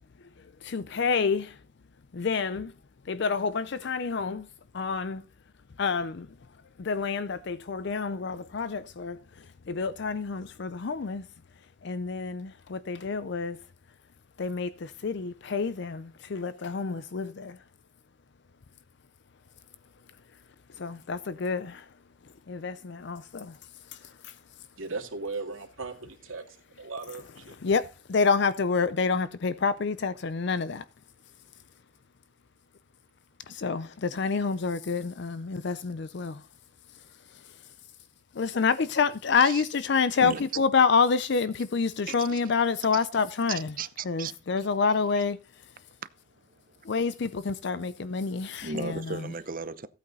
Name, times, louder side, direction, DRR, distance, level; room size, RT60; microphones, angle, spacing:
voice 1, 0.6-1.6 2.1-2.7 3.1-4.5 4.7-5.3 5.8-6.3 6.8-11.3 11.8-13.6 14.4-17.6 20.8-21.9 22.5-23.6 23.9-24.3 27.6-30.8 33.5-36.5 37.3-37.4 38.3-43.7 44.1-45.4 46.8-49.3, left 5 dB, 55° left, 0.5 m, -28 dB
voice 2, 24.8-27.6, right 3 dB, 80° right, 2.5 m, -37 dB
voice 3, 42.1-42.4 43.8-44.3 46.5-46.8 48.6-49.9, right 4 dB, 45° right, 0.8 m, -36 dB
15.5 x 8.5 x 4.1 m
head